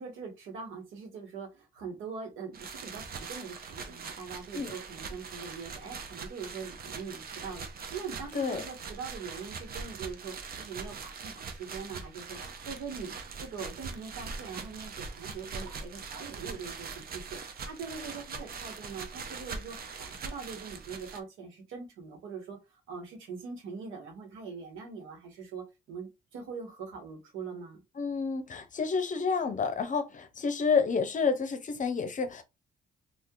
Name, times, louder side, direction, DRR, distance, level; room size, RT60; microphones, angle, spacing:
voice 1, 0.0-12.4 12.6-22.6 22.9-27.8, right 5 dB, 85° right, 1.2 m, -42 dB
sound 1, 2.5-21.2, right 5 dB, 50° right, 0.7 m, -42 dB
voice 2, 28.0-32.4, left 5 dB, 40° left, 0.7 m, -29 dB
2.8 x 2.4 x 3.7 m
cardioid pair, 90°, 20 cm